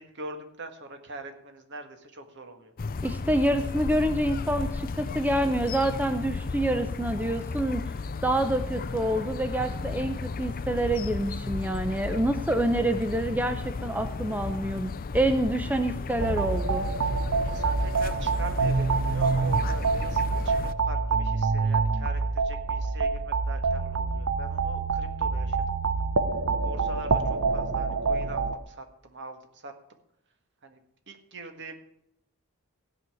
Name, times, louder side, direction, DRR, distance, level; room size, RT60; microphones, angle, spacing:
voice 1, 0.1-2.7 17.4-20.6 20.8-25.6 26.6-28.8 29.1-29.7 30.6-30.8 31.1-31.8, right 2 dB, 55° right, 6 dB, 1.7 m, -42 dB
sound 1, 2.8-20.7, left 4 dB, 40° left, 0.5 m, -34 dB
voice 2, 3.0-7.9 8.2-16.9, right 1 dB, 10° right, 7 dB, 0.6 m, -27 dB
sound 2, 16.2-28.6, right 4 dB, 75° right, 0.9 m, -26 dB
16.0 x 5.5 x 9.1 m, 0.76 s
head